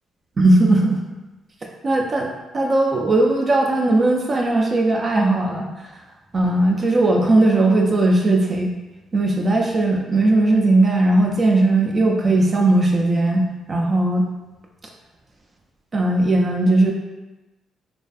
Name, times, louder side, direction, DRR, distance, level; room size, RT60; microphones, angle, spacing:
voice 1, 0.4-1.0 1.8-5.9 6.3-8.7 9.1-14.2 15.9-16.9, right 2 dB, 35° right, 0 dB, 0.3 m, -18 dB
2.5 x 2.3 x 2.3 m, 1.1 s
cardioid pair, 90°, 0 cm